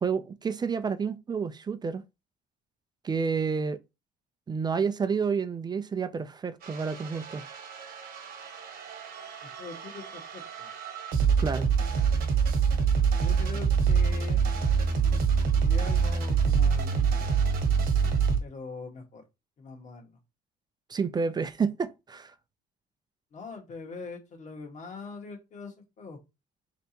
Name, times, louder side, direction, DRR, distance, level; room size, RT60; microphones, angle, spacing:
voice 1, 0.0-2.0 3.0-3.8 4.5-7.4 11.4-11.7 20.9-22.3, right 5 dB, 25° right, 0.4 m, -29 dB
sound 1, 6.6-18.4, right 6 dB, 60° right, 1.2 m, -26 dB
voice 2, 9.4-10.7 13.2-14.4 14.9-15.3 15.6-17.3 18.4-19.2 19.6-20.2 23.3-26.2, left 4 dB, 45° left, 1.4 m, -42 dB
4.0 x 3.4 x 2.8 m
cardioid pair, 110°, 17 cm